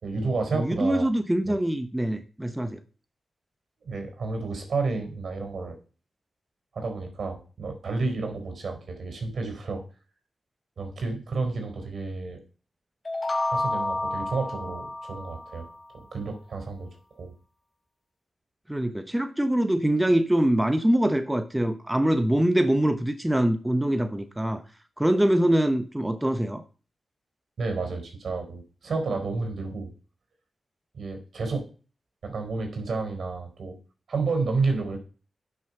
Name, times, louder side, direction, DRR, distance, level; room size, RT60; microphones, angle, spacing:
voice 1, 0.0-1.1 1.4-1.6 3.8-5.8 6.7-9.8 10.8-12.4 13.5-15.7 15.9-16.9 17.2-17.3 27.6-29.9 30.9-31.7 32.2-33.8 34.1-35.0, right 3 dB, 70° right, 4.4 m, -30 dB
voice 2, 0.5-2.8 18.7-24.6 25.0-26.6, right 1 dB, 10° right, 0.9 m, -24 dB
sound 1, 13.0-15.8, left 2 dB, 35° left, 1.2 m, -30 dB
10.5 x 6.3 x 5.4 m
cardioid pair, 80°, 0 cm